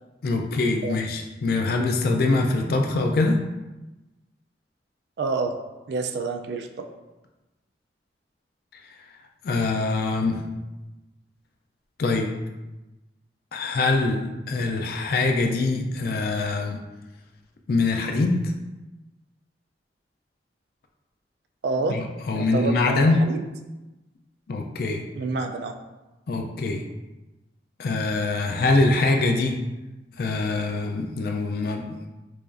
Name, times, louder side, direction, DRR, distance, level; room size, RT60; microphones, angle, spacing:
voice 1, 0.2-3.4 9.4-10.4 12.0-12.3 13.5-16.8 17.7-18.5 21.9-23.3 24.5-25.0 26.3-26.8 27.8-29.6 30.2-32.0, left 3 dB, 55° left, 3 dB, 0.4 m, -23 dB
voice 2, 5.2-5.5 5.9-6.7 21.6-22.0 22.3-23.4 25.1-25.8, right 3 dB, 65° right, 6 dB, 0.3 m, -28 dB
4.8 x 2.4 x 2.5 m, 1.1 s
head